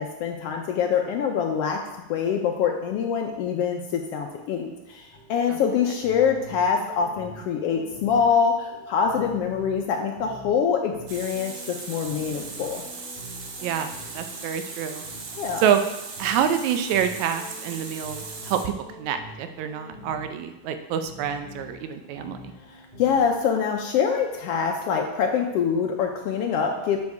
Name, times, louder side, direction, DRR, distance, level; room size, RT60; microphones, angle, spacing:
voice 1, 0.0-1.8 2.1-12.8 15.4-15.6 23.0-27.0, left 7 dB, 85° left, 2 dB, 1.3 m, -25 dB
sound 1, 5.1-23.7, left 1 dB, ahead, 2.5 m, -46 dB
Water tap faucet, 11.1-18.6, right 4 dB, 65° right, 1.5 m, -38 dB
voice 2, 13.6-15.0 15.6-15.8 16.2-22.5, right 8 dB, 80° right, 8 dB, 2.0 m, -27 dB
8.3 x 5.3 x 4.7 m, 0.98 s
omnidirectional pair, 3.4 m